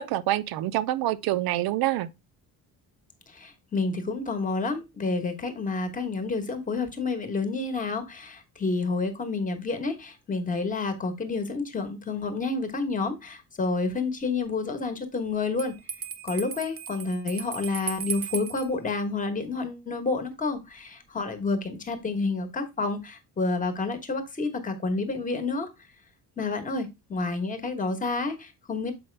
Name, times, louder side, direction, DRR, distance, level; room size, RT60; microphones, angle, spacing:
voice 1, 0.0-2.1, right 14 dB, 80° right, 0.7 m, -26 dB
voice 2, 3.3-15.7 16.2-25.7 26.4-28.9, left 3 dB, 20° left, 1.1 m, -29 dB
Bell, 15.6-18.7, right 6 dB, 25° right, 0.6 m, -36 dB
7.0 x 4.9 x 3.2 m
cardioid pair, 165°, 36 cm